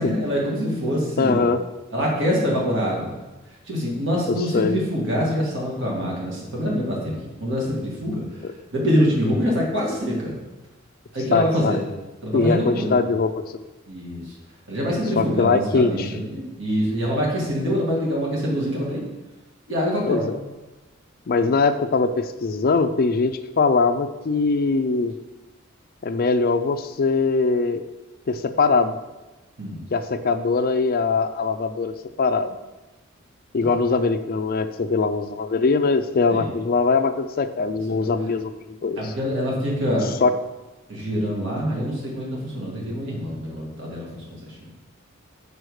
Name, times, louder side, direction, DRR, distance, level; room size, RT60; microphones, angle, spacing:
voice 1, 0.0-1.4 1.9-3.2 3.7-8.2 8.7-10.4 11.1-11.8 12.2-13.0 13.9-14.3 14.7-19.1 19.7-20.3 29.6-29.9 33.6-33.8 36.3-36.5 39.0-40.2 40.9-44.6, equal, 60° right, -3 dB, 2.1 m, -25 dB
voice 2, 1.2-1.6 4.3-4.8 8.4-8.5 11.3-11.8 12.3-13.3 15.2-16.1 20.1-20.4 21.3-25.1 26.0-27.8 28.3-29.0 29.9-32.6 33.5-39.1 40.2-40.3, left 4 dB, 45° left, 10 dB, 0.4 m, -21 dB
6.3 x 5.0 x 4.8 m, 1.1 s
head